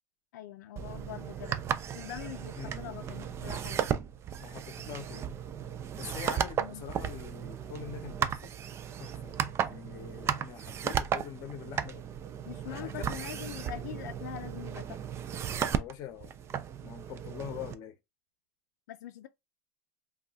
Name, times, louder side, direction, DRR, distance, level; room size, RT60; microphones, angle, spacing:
voice 1, 0.3-1.6 1.9-3.9 6.6-6.9 12.4-15.0 18.9-19.3, left 12 dB, 80° left, 0.4 m, -43 dB
sound 1, 0.8-17.7, right 8 dB, 30° right, 0.4 m, -35 dB
voice 2, 4.4-5.3 6.0-8.5 9.0-12.0 12.6-13.1 15.6-16.3 16.8-18.0, left 10 dB, 45° left, 0.7 m, -44 dB
2.3 x 2.2 x 3.9 m
supercardioid pair, 115°, 9 cm